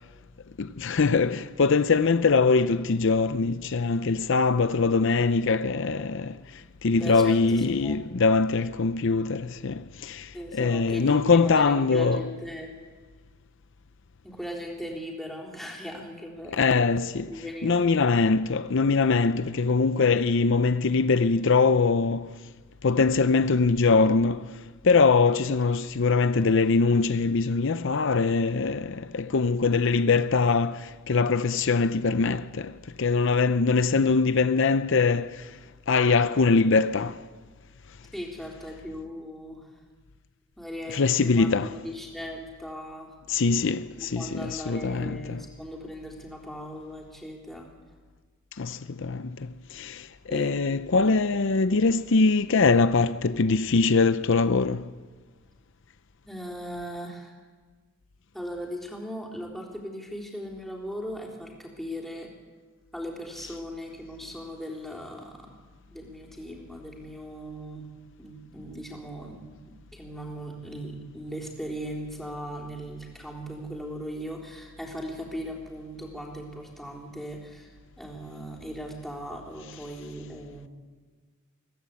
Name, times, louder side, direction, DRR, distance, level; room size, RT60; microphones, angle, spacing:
voice 1, 0.6-12.2 16.6-17.3 17.6-22.4 22.8-24.6 24.8-35.6 35.9-37.2 40.9-41.7 43.3-45.4 48.6-54.9, left 4 dB, 65° left, 0.6 m, -23 dB
voice 2, 6.9-8.0 10.3-12.7 14.2-16.9 17.3-17.9 38.1-39.7 40.6-43.2 44.0-47.7 50.3-50.6 56.2-57.3 58.3-62.3 62.9-65.5 65.9-67.9 68.2-69.5 69.9-80.7, equal, ahead, 3.9 m, -38 dB
22.0 x 17.5 x 8.5 m
head